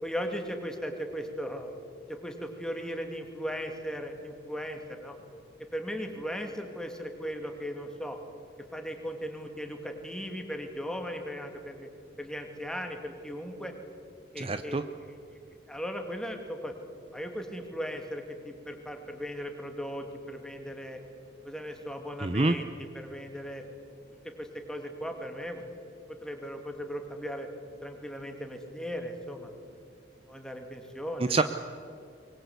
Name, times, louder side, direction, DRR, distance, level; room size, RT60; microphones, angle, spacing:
voice 1, 0.0-1.7 2.1-5.2 5.7-8.2 8.7-11.9 12.2-13.7 14.3-15.4 15.7-16.8 17.1-21.0 21.4-22.7 22.9-23.6 24.4-25.6 26.2-27.5 27.8-29.5 30.3-31.3, equal, 5° left, 4 dB, 2.7 m, -37 dB
voice 2, 14.4-14.8 22.2-22.6 31.3-31.4, right 3 dB, 30° right, 10 dB, 0.7 m, -26 dB
24.5 x 21.5 x 8.2 m, 2.5 s
head